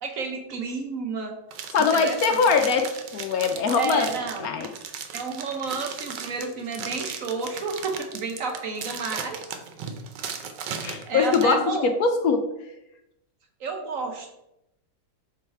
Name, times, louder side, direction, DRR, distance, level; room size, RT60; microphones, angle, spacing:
voice 1, 0.0-1.3 1.9-2.4 3.8-4.5 5.1-9.4 11.0-11.9 13.6-14.3, right 4 dB, 60° right, 3 dB, 1.0 m, -31 dB
sound 1, 1.5-11.5, right 7 dB, 85° right, 1.4 m, -36 dB
voice 2, 1.7-4.1 4.4-4.7 10.8-12.5, left 5 dB, 70° left, 6 dB, 1.0 m, -22 dB
7.1 x 3.2 x 4.5 m, 0.86 s
omnidirectional pair, 1.8 m